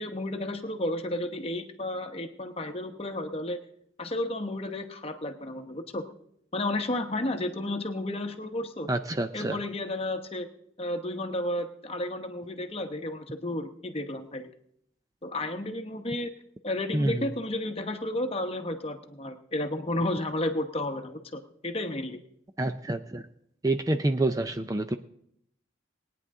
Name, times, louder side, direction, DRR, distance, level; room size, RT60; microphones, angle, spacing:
voice 1, 0.0-3.6 4.0-6.0 6.5-8.9 9.3-10.5 10.8-14.5 15.2-16.3 16.6-22.2, left 1 dB, 30° left, 7 dB, 1.0 m, -32 dB
voice 2, 8.9-9.6 16.9-17.3 22.6-23.2 23.6-25.0, right 2 dB, 20° right, 8 dB, 0.4 m, -27 dB
20.0 x 9.4 x 3.7 m, 0.71 s
head